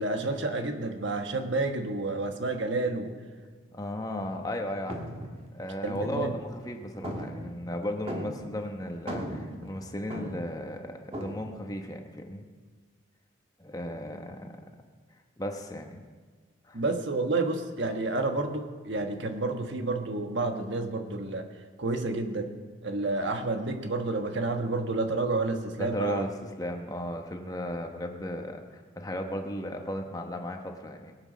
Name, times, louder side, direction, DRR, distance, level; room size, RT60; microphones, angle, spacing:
voice 1, 0.0-3.1 5.8-6.4 16.7-21.5 21.8-22.5 22.8-26.2, right 2 dB, 65° right, 5 dB, 1.3 m, -30 dB
voice 2, 3.7-5.0 5.5-12.4 13.6-14.6 15.4-16.0 16.6-16.8 25.8-26.3 26.6-31.1, left 1 dB, 20° left, 4 dB, 1.0 m, -35 dB
sound 1, 4.2-4.5 4.9-6.7 7.0-8.7 8.9-10.6 11.1-11.4, equal, 30° right, 1.5 m, -38 dB
21.0 x 8.0 x 6.1 m, 1.5 s
head